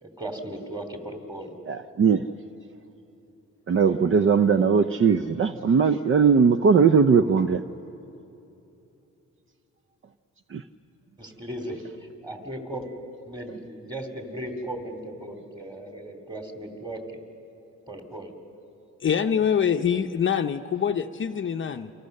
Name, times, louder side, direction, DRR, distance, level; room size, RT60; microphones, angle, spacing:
voice 1, 0.0-1.5 11.2-12.9 13.3-17.2 17.9-18.3, right 1 dB, 15° right, 5 dB, 2.7 m, -37 dB
voice 2, 1.7-2.2 3.7-7.6 10.5-10.6, right 6 dB, 45° right, 10 dB, 0.6 m, -19 dB
voice 3, 19.0-21.9, left 8 dB, 40° left, 7 dB, 0.7 m, -25 dB
28.0 x 25.5 x 6.6 m, 3.0 s
cardioid pair, 130°, 30 cm